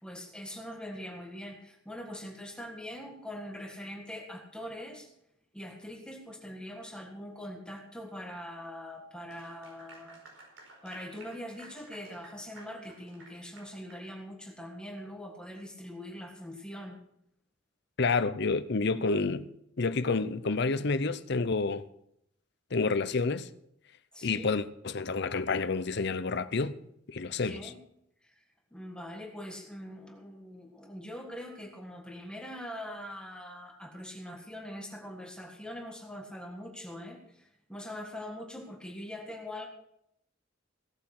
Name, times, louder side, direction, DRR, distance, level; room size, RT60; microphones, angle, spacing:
voice 1, 0.0-5.1 5.5-10.2 10.8-17.0 24.1-24.5 27.4-27.8 28.2-28.4 28.7-39.7, left 1 dB, 5° left, 1.6 m, -43 dB
Clapping / Applause, 9.2-14.1, right 2 dB, 85° right, 4.9 m, -53 dB
voice 2, 18.0-19.5 19.8-21.8 22.7-23.5 24.2-26.8 27.1-27.6, left 4 dB, 60° left, 0.7 m, -29 dB
17.0 x 8.5 x 6.0 m
head